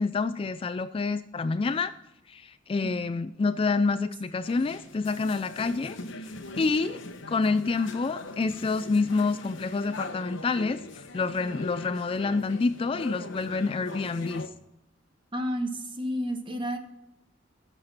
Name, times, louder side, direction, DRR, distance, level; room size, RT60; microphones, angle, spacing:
voice 1, 0.0-1.9 2.3-7.0 7.3-14.4, left 4 dB, 30° left, 13 dB, 0.3 m, -28 dB
sound 1, 4.4-14.5, left 2 dB, 70° left, 1.0 m, -41 dB
voice 2, 15.3-16.8, equal, 25° right, 6 dB, 1.2 m, -31 dB
15.0 x 6.7 x 4.2 m, 0.87 s
head